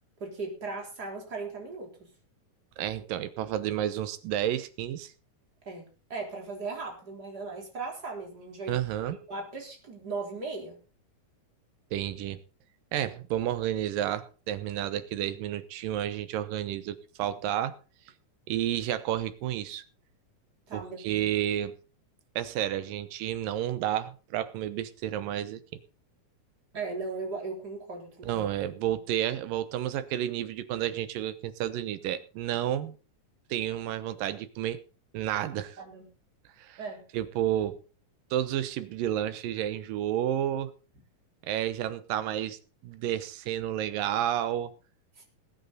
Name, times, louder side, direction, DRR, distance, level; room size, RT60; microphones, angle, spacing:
voice 1, 0.2-1.9 5.7-5.8 6.1-8.8 9.3-10.8 20.7-21.3 26.7-28.5 35.8-36.1 36.8-37.0 45.2-45.3, right 3 dB, 30° right, 4.0 m, -37 dB
voice 2, 2.8-5.1 8.7-9.2 11.9-12.4 12.9-17.8 18.5-19.8 20.7-21.7 22.4-25.6 28.2-33.0 33.5-34.8 35.1-35.8 36.6-36.8 37.1-37.8 38.3-40.7 41.4-44.7, right 11 dB, 80° right, 2.6 m, -31 dB
19.5 x 9.3 x 4.0 m
omnidirectional pair, 3.9 m